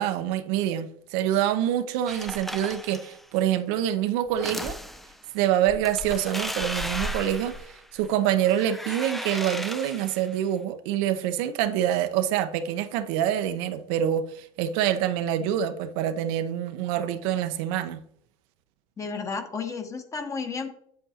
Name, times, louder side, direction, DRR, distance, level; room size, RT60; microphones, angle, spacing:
voice 1, 0.0-4.8 5.3-7.5 7.9-18.0, right 11 dB, 70° right, 0.7 m, -26 dB
sound 1, 2.1-3.2 4.3-5.2 5.7-8.1 8.4-10.3, equal, ahead, 0.4 m, -35 dB
voice 2, 19.0-20.7, left 5 dB, 20° left, 1.0 m, -32 dB
8.2 x 7.7 x 2.8 m
supercardioid pair, 135°, 15 cm